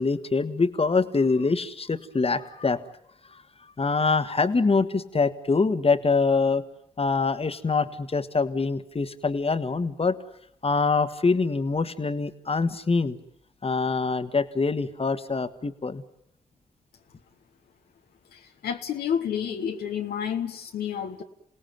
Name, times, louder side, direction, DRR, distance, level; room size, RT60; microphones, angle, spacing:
voice 1, 0.0-2.8 3.3-3.4 3.8-6.6 7.0-10.2 10.6-13.2 13.6-16.0, left 4 dB, 35° left, 11 dB, 1.6 m, -24 dB
voice 2, 18.3-21.2, left 8 dB, 75° left, 5 dB, 1.3 m, -30 dB
28.0 x 18.0 x 9.2 m, 0.77 s
hypercardioid pair, 40°, 16 cm